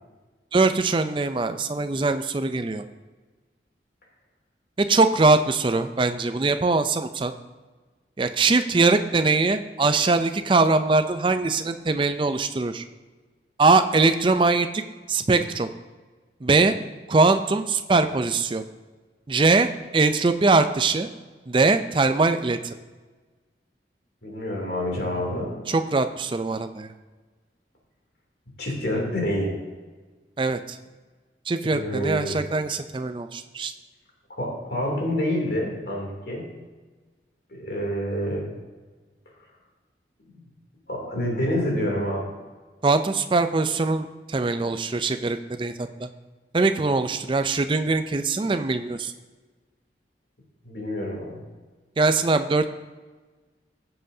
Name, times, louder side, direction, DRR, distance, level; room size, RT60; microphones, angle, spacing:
voice 1, 0.5-2.8 4.8-7.3 8.2-12.8 13.6-14.8 15.1-15.7 16.4-16.7 17.1-18.6 19.3-19.7 19.9-21.1 21.5-22.7 25.7-26.9 30.4-30.6 31.5-33.7 42.8-46.1 46.5-49.1 52.0-52.7, right 3 dB, 30° right, 9 dB, 0.4 m, -22 dB
voice 2, 24.2-25.5 28.6-29.5 31.6-32.4 34.4-36.4 37.5-38.4 40.9-42.3 50.6-51.4, equal, 65° left, -2 dB, 2.9 m, -27 dB
15.5 x 7.7 x 2.7 m, 1.3 s
head